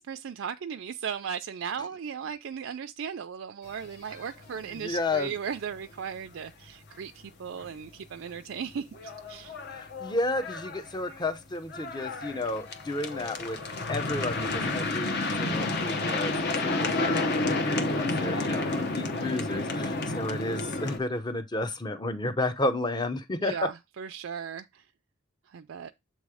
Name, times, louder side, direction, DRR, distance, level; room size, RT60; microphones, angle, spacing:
voice 1, 0.0-9.6 23.4-24.8 25.5-25.9, right 7 dB, 75° right, 0.4 m, -37 dB
sound 1, 3.8-4.5 4.8-4.9 5.2-5.3 5.7-5.8 7.6-7.7 8.3-8.4 8.7-21.0, left 2 dB, 55° left, 1.0 m, -30 dB
voice 2, 4.8-5.3 9.7-13.6 13.9-16.3 16.6-16.7 17.0-23.7, left 2 dB, 20° left, 0.6 m, -32 dB
7.4 x 3.1 x 4.8 m
head